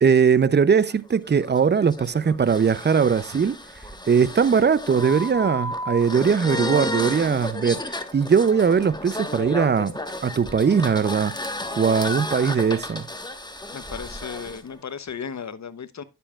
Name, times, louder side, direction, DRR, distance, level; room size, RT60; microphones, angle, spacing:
voice 1, 0.0-3.6 4.1-7.8 8.1-11.4 11.8-13.1, right 6 dB, 30° right, 0.5 m, -20 dB
sound 1, 0.9-14.6, left 1 dB, 10° left, 1.2 m, -33 dB
voice 2, 13.7-16.0, left 6 dB, 45° left, 0.8 m, -35 dB
10.0 x 6.9 x 2.3 m
cardioid pair, 45°, 39 cm